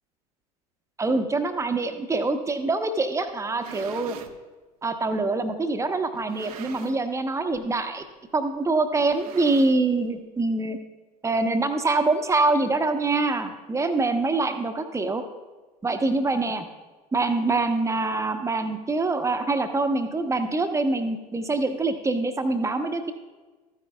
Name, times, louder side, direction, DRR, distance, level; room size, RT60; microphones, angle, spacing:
voice 1, 1.0-4.2 4.8-8.0 8.3-10.8 11.2-15.2 15.8-16.7 17.1-23.1, right 3 dB, 15° right, 8 dB, 0.9 m, -25 dB
sound 1, 3.4-4.4 5.1-5.2 6.1-7.2 7.5-7.8 8.0-8.1 9.0-10.1, right 8 dB, 65° right, 0.8 m, -43 dB
14.0 x 9.4 x 2.3 m, 1.3 s
figure-of-eight pair, 70°, 20 cm